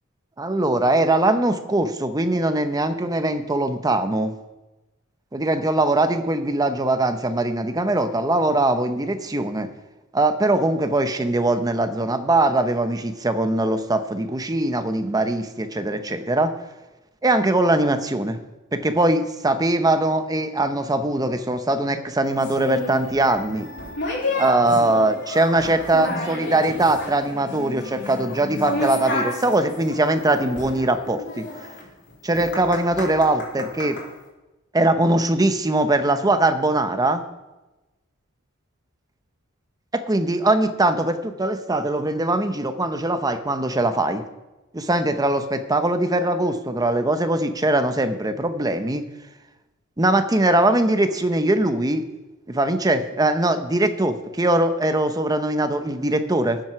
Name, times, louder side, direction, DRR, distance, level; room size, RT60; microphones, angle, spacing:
voice 1, 0.4-4.3 5.3-9.7 10.1-16.5 17.2-18.4 18.7-23.7 24.3-31.5 32.2-34.0 34.7-37.2 39.9-44.2 44.7-49.0 50.0-52.1 52.5-56.6, right 2 dB, 20° right, 9 dB, 0.8 m, -21 dB
sound 1, 22.4-34.1, left 2 dB, 60° left, 3.5 m, -31 dB
13.5 x 7.7 x 5.7 m, 1.1 s
head